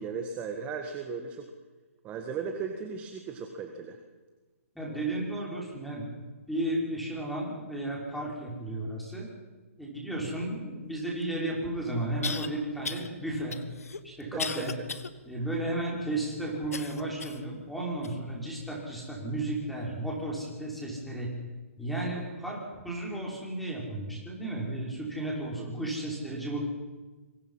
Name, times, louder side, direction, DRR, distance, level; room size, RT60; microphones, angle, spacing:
voice 1, 0.0-1.4 2.0-4.0 4.8-5.0 14.3-14.6 25.6-25.9, right 6 dB, 15° right, 5 dB, 1.7 m, -37 dB
voice 2, 4.8-6.1 6.5-9.3 9.8-13.6 14.0-14.7 15.2-21.3 21.8-26.7, right 1 dB, ahead, -3 dB, 5.7 m, -33 dB
sound 1, 11.2-11.3 12.2-12.5 12.8-13.1 13.5-15.1 15.6-15.7 16.7-17.5 18.0-18.2 18.9-19.0, left 5 dB, 85° left, 1.8 m, -36 dB
26.5 x 24.0 x 5.7 m, 1.3 s
hypercardioid pair, 150°, 8 cm